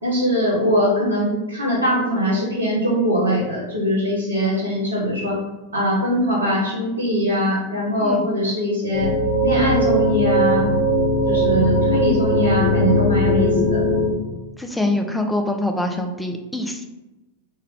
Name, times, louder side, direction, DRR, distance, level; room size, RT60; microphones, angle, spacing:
voice 1, 0.0-5.4 5.7-9.1 9.4-10.7 11.3-13.8, equal, 75° right, -4 dB, 1.0 m, -21 dB
sound 1, 8.9-14.1, equal, 50° left, 0.9 m, -19 dB
voice 2, 14.6-16.9, left 1 dB, 5° left, 4 dB, 0.3 m, -24 dB
3.3 x 2.2 x 3.5 m, 1.1 s
figure-of-eight pair, 90°, 0 cm